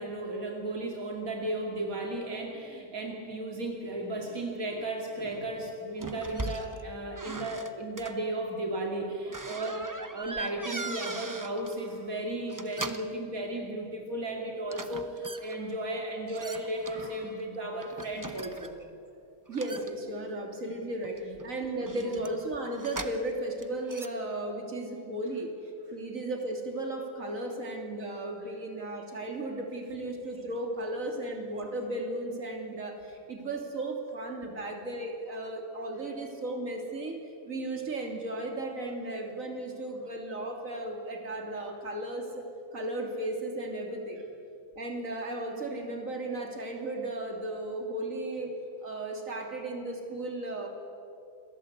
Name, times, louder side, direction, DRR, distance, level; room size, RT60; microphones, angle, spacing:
voice 1, 0.0-18.8 21.2-21.3, right 1 dB, 90° right, 1 dB, 3.0 m, -35 dB
sound 1, 6.0-6.8 7.2-8.1 9.3-11.8 12.4-13.2 14.7-15.6 16.3-17.4 17.8-18.9 19.5-20.5 21.0-23.4 23.6-24.1, right 2 dB, 15° right, 0.9 m, -40 dB
voice 2, 19.5-25.5 25.9-37.2 37.5-42.5 42.7-44.2 44.8-48.5 48.8-50.7, right 1 dB, 70° right, 1 dB, 3.5 m, -35 dB
28.5 x 21.5 x 8.2 m, 2.6 s
omnidirectional pair, 1.4 m